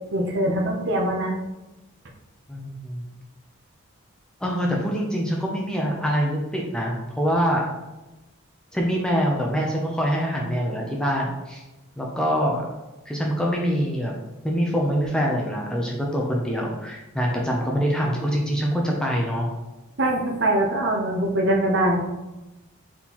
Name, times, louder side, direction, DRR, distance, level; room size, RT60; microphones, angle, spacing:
voice 1, 0.1-1.4 20.0-22.0, right 1 dB, 50° right, 1 dB, 0.7 m, -22 dB
voice 2, 2.5-3.0 4.4-7.7 8.7-11.6 12.0-12.7 13.1-14.1 14.4-19.5, equal, 5° left, -2 dB, 0.5 m, -24 dB
4.2 x 3.6 x 2.9 m, 1.0 s
head